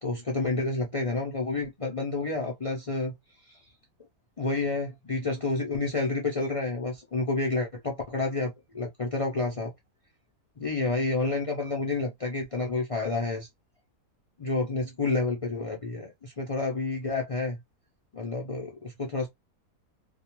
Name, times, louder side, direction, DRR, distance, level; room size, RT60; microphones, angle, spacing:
voice 1, 0.0-3.1 3.5-3.6 4.4-9.7 10.6-13.5 14.4-17.6 18.1-19.3, left 3 dB, 55° left, 0.3 m, -29 dB
2.4 x 2.2 x 2.9 m
omnidirectional pair, 1.6 m